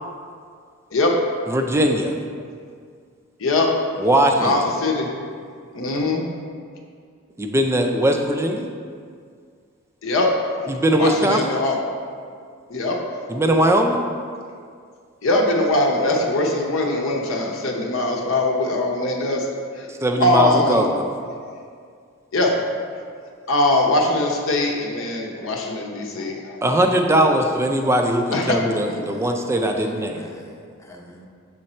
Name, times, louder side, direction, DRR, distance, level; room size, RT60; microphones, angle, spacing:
voice 1, 0.9-1.2 3.4-3.7 4.4-5.1 5.7-6.3 10.0-11.8 12.7-13.3 15.2-20.9 21.3-21.4 22.3-22.6 23.4-26.7 28.3-28.6 28.9-29.0, left 2 dB, 70° left, 0 dB, 0.8 m, -22 dB
voice 2, 1.5-2.1 4.0-4.6 7.4-8.7 10.7-11.4 13.3-14.0 20.0-21.0 26.6-30.3, right 1 dB, 15° right, 4 dB, 0.4 m, -20 dB
voice 3, 29.0-31.3, equal, 15° left, -1 dB, 0.7 m, -43 dB
6.4 x 3.9 x 4.3 m, 2.2 s
head